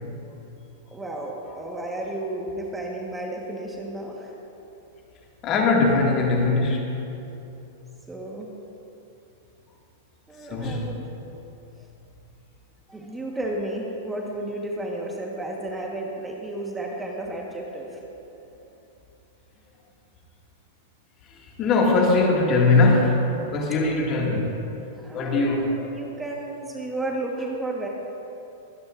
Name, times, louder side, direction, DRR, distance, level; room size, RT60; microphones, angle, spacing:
voice 1, 0.9-4.3 8.1-8.5 10.3-11.0 12.9-18.0 25.0-27.9, right 1 dB, 10° right, -1 dB, 1.3 m, -32 dB
voice 2, 5.4-6.8 10.5-10.9 21.3-24.6 25.1-25.8, left 3 dB, 35° left, -1 dB, 2.0 m, -21 dB
23.0 x 9.6 x 2.5 m, 2.9 s
hypercardioid pair, 130°, 0 cm